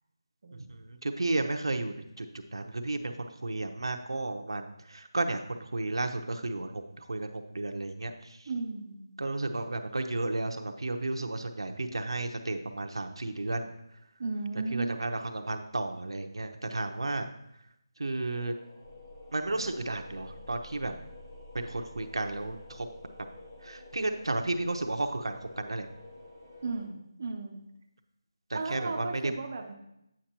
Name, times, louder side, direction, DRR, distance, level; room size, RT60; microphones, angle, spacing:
voice 1, 0.7-2.3 2.5-6.8 7.1-8.1 9.2-13.7 14.7-17.3 18.0-18.5 19.3-20.9 21.5-22.9 23.6-25.9 28.5-29.3, right 2 dB, 90° right, 5 dB, 0.7 m, -33 dB
voice 2, 8.5-9.1 14.2-15.0 26.6-27.6 28.5-29.7, right 3 dB, 20° right, 1 dB, 0.4 m, -35 dB
sound 1, 18.3-26.9, left 2 dB, 15° left, 0.8 m, -49 dB
8.6 x 5.9 x 2.9 m, 0.81 s
figure-of-eight pair, 180°, 2 cm